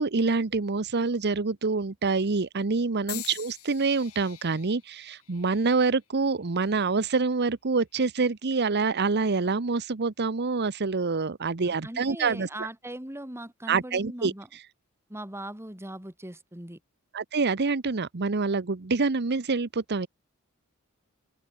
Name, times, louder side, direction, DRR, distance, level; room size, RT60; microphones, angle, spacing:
voice 1, 0.0-12.5 13.7-14.6 17.1-20.1, right 4 dB, 50° right, 0.9 m, -26 dB
sound 1, 3.1-7.2 7.9-8.3 9.3-9.5, left 16 dB, 85° left, 3.0 m, -45 dB
voice 2, 11.6-14.5 15.1-16.8, right 1 dB, 10° right, 3.2 m, -39 dB
head